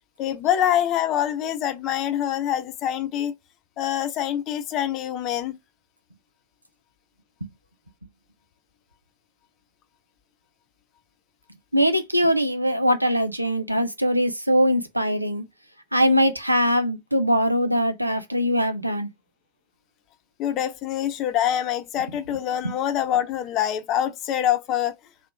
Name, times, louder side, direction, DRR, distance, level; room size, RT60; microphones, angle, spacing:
voice 1, 0.2-3.3 3.8-5.6 20.4-24.9, left 11 dB, 35° left, 0.5 m, -25 dB
voice 2, 11.7-15.4 15.9-19.1 22.6-22.8, equal, 85° right, 0.5 m, -22 dB
3.0 x 2.1 x 3.2 m
figure-of-eight pair, 90°, 0 cm